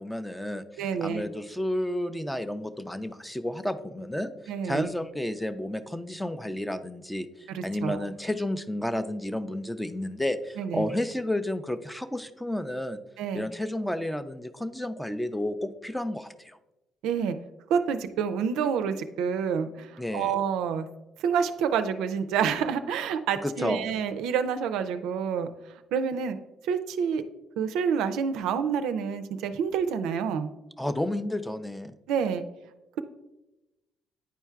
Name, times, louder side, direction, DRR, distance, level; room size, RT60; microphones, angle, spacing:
voice 1, 0.0-4.3 4.6-13.0 13.3-16.6 20.0-20.3 23.4-23.8 30.8-31.9, left 1 dB, 5° left, 11 dB, 0.4 m, -31 dB
voice 2, 0.8-1.2 4.5-4.9 7.5-8.1 10.6-10.9 13.2-13.5 17.0-17.4 17.7-20.9 21.2-25.5 25.9-26.4 26.6-27.2 27.6-30.5 32.1-32.4, right 7 dB, 80° right, 9 dB, 0.4 m, -28 dB
9.2 x 4.4 x 2.4 m, 0.99 s
supercardioid pair, 75°, 0 cm